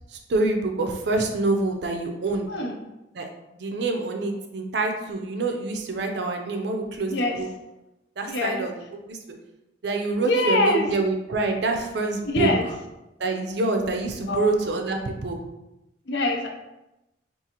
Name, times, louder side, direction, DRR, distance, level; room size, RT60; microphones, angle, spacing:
voice 1, 0.1-2.5 3.1-3.3 3.5-7.5 8.2-8.7 9.1-9.2 9.8-12.5 13.2-15.4, right 3 dB, 60° right, 4 dB, 0.5 m, -26 dB
voice 2, 8.3-8.6 10.2-10.9 12.2-12.6 14.3-14.5 16.1-16.5, left 2 dB, 65° left, 2 dB, 0.5 m, -23 dB
3.8 x 2.5 x 2.8 m, 0.95 s
head